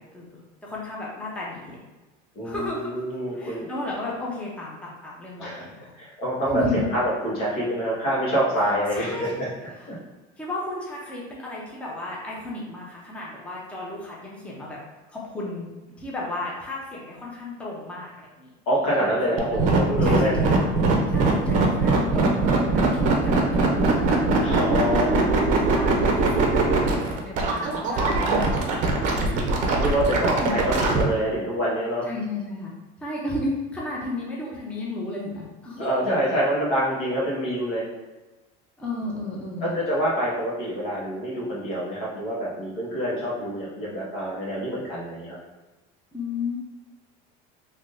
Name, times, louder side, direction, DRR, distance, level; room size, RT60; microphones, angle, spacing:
voice 1, 0.0-1.8 2.4-3.0 3.4-5.9 6.5-6.9 8.9-9.4 10.4-14.8 15.1-15.7 16.0-18.5 18.8-19.1 19.5-19.7 20.0-24.5 25.1-25.3 25.5-28.5 30.4-30.7 32.1-32.7 33.0-36.2 38.8-39.8 46.1-46.6, left 2 dB, 5° left, -4 dB, 0.5 m, -33 dB
voice 2, 2.3-3.7 5.4-5.7 5.9-9.5 9.9-10.0 18.7-20.4 24.4-25.2 28.8-29.5 29.8-32.1 35.8-37.8 39.6-45.4, equal, 80° left, -5 dB, 1.4 m, -26 dB
sound 1, 19.4-31.0, right 3 dB, 40° right, 0.5 m, -21 dB
3.3 x 2.7 x 2.6 m, 1.1 s
cardioid pair, 145°, 20 cm